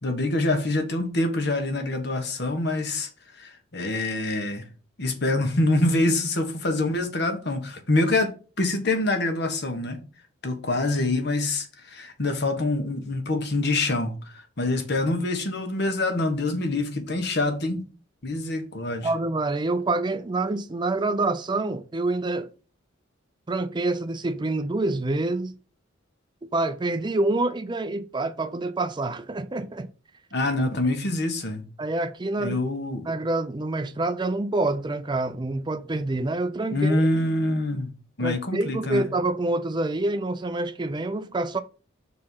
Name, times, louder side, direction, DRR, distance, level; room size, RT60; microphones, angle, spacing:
voice 1, 0.0-4.7 5.0-10.0 10.4-17.8 18.2-19.1 30.3-31.6 32.4-33.1 36.7-37.9 38.2-39.1, left 2 dB, 55° left, 1.4 m, -25 dB
voice 2, 19.0-22.5 23.5-25.5 26.4-29.9 31.8-32.6 33.1-37.0 38.2-41.6, right 2 dB, 25° right, 0.4 m, -27 dB
6.2 x 4.4 x 5.6 m
head